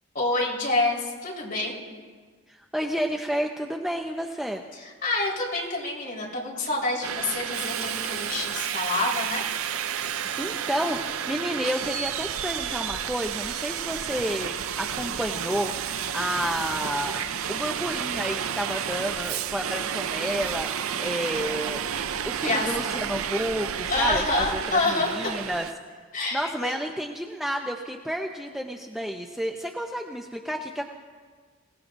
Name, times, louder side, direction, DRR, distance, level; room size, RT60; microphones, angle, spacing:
voice 1, 0.1-1.8 4.7-9.4 22.4-22.7 23.9-25.3 26.1-26.8, left 2 dB, 40° left, -4 dB, 4.4 m, -27 dB
voice 2, 2.5-4.6 10.1-11.0 11.3-17.1 17.5-20.7 21.0-21.8 22.3-25.7 26.3-30.9, equal, ahead, 2 dB, 0.6 m, -31 dB
Subway metro underground, 7.0-25.7, right 8 dB, 75° right, 0.5 m, -31 dB
26.5 x 17.5 x 2.6 m, 1.5 s
head